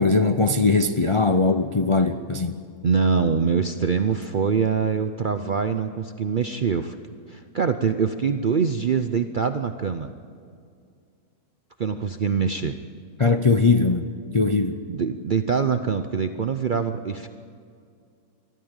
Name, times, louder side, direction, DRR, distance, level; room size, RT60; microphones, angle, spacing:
voice 1, 0.0-2.6 13.2-14.0 14.3-14.8, left 3 dB, 45° left, 8 dB, 0.4 m, -20 dB
voice 2, 2.8-7.0 7.3-10.1 11.8-12.8 14.9-17.3, right 6 dB, 50° right, 9 dB, 0.6 m, -24 dB
22.0 x 14.0 x 8.9 m, 2.3 s
omnidirectional pair, 1.6 m